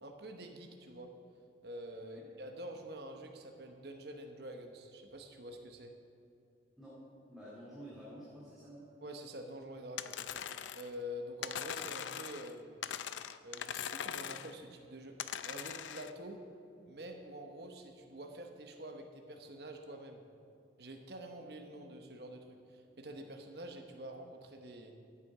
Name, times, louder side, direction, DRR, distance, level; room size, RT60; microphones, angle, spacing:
voice 1, 0.0-1.1 1.6-5.9 9.0-10.1 10.7-12.8 13.4-15.2 15.4-16.4 16.9-20.2 20.8-24.9, equal, 60° right, 4 dB, 1.0 m, -47 dB
voice 2, 7.3-8.9, equal, ahead, -9 dB, 2.4 m, -50 dB
sound 1, 10.0-10.9 11.4-12.5 12.8-14.6 15.2-16.1, left 9 dB, 85° left, 0.5 m, -41 dB
15.0 x 8.5 x 4.9 m, 2.6 s
head